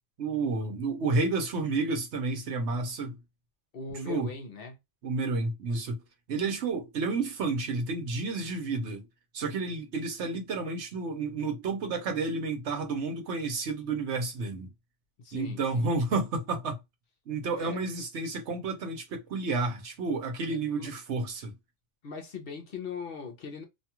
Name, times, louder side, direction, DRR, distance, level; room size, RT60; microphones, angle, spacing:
voice 1, 0.2-3.2 4.1-4.3 5.0-6.0 6.3-9.1 9.3-14.7 15.3-16.8 17.3-21.5, right 3 dB, 75° right, 1.1 m, -31 dB
voice 2, 3.7-4.8 15.2-15.9 17.5-17.8 20.7-20.9 22.0-23.6, left 4 dB, 55° left, 0.9 m, -40 dB
2.7 x 2.3 x 2.8 m
omnidirectional pair, 1.2 m